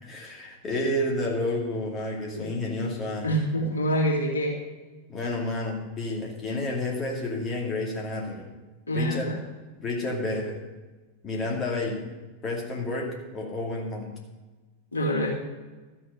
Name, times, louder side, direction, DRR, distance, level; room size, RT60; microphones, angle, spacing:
voice 1, 0.0-3.3 5.1-8.5 8.9-9.3 9.8-10.6 11.2-12.1 12.4-14.1, left 2 dB, 25° left, -2 dB, 2.4 m, -30 dB
voice 2, 3.2-4.5 8.9-9.4 14.9-15.3, equal, 75° left, -3 dB, 2.9 m, -26 dB
13.5 x 7.0 x 6.5 m, 1.3 s
figure-of-eight pair, 90°, 0 cm